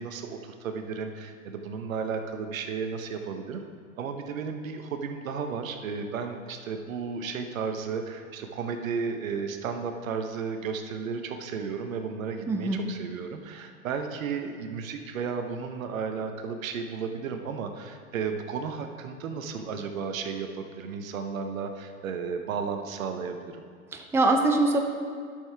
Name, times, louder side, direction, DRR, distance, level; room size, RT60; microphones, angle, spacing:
voice 1, 0.0-3.6 4.0-23.7, right 5 dB, 70° right, 6 dB, 1.0 m, -33 dB
voice 2, 12.5-12.8 23.9-24.8, right 2 dB, 5° right, 3 dB, 0.5 m, -23 dB
12.0 x 6.6 x 3.4 m, 2.1 s
hypercardioid pair, 100°, 42 cm